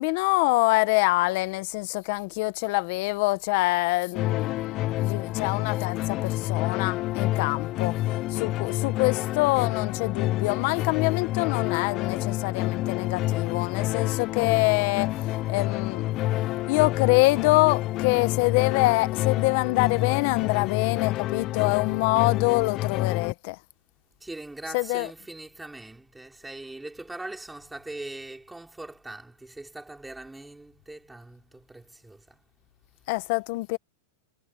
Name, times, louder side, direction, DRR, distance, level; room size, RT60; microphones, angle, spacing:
voice 1, 0.0-16.1 16.7-23.6 24.7-25.1 33.1-33.8, left 23 dB, 55° left, 1.0 m, -25 dB
sound 1, 4.1-23.3, left 16 dB, 40° left, 0.6 m, -28 dB
voice 2, 24.2-32.4, right 2 dB, 5° right, 4.5 m, -41 dB
hypercardioid pair, 125°, 0 cm